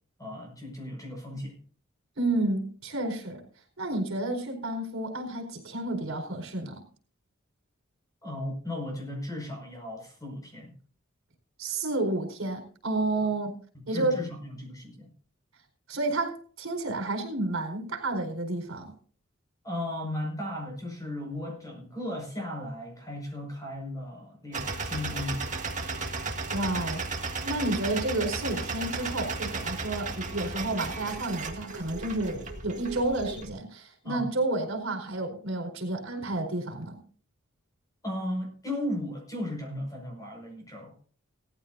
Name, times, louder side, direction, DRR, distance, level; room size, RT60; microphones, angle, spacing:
voice 1, 0.2-1.6 8.2-10.7 13.7-15.1 19.6-25.6 34.0-34.3 38.0-40.9, left 1 dB, 15° left, 2 dB, 5.7 m, -36 dB
voice 2, 2.2-3.4 3.8-6.8 11.6-13.5 13.9-14.1 15.9-18.9 26.5-27.0 27.4-37.0, right 2 dB, 75° right, 3 dB, 4.6 m, -30 dB
sound 1, 24.5-33.5, right 3 dB, 35° right, 1.9 m, -35 dB
18.5 x 14.5 x 2.7 m, 0.42 s
head